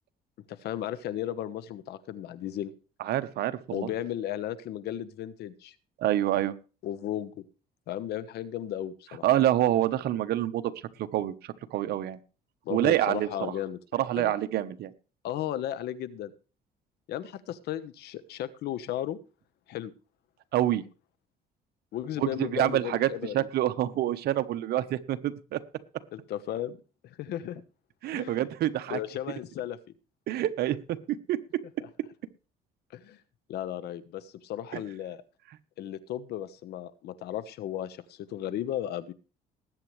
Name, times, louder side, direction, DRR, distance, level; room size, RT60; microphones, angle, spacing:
voice 1, 0.5-2.7 3.7-5.7 6.8-7.4 7.9-9.2 12.6-14.3 15.2-16.3 17.1-19.2 19.7-19.9 21.9-23.5 26.1-26.8 27.0-27.6 28.1-28.5 28.9-29.8 32.9-33.2 33.5-35.2 35.8-39.1, left 11 dB, 75° left, 14 dB, 1.2 m, -35 dB
voice 2, 3.0-3.9 6.0-6.5 9.2-10.7 11.0-12.2 12.7-13.5 13.9-14.9 20.5-20.8 22.2-25.6 28.0-29.0 30.3-31.4 34.7-34.8, right 13 dB, 70° right, 11 dB, 1.2 m, -27 dB
20.0 x 9.0 x 3.3 m, 0.34 s
cardioid pair, 110°, 17 cm